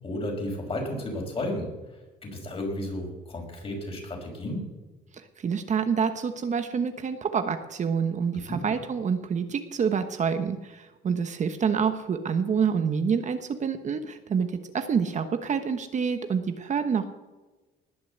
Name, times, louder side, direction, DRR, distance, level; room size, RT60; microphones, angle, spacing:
voice 1, 0.0-1.7 2.2-4.7 8.5-8.6, left 1 dB, 30° left, 1 dB, 5.4 m, -33 dB
voice 2, 5.4-17.0, right 6 dB, 45° right, 8 dB, 1.1 m, -27 dB
20.0 x 6.8 x 8.0 m, 1.2 s
cardioid pair, 110°, 18 cm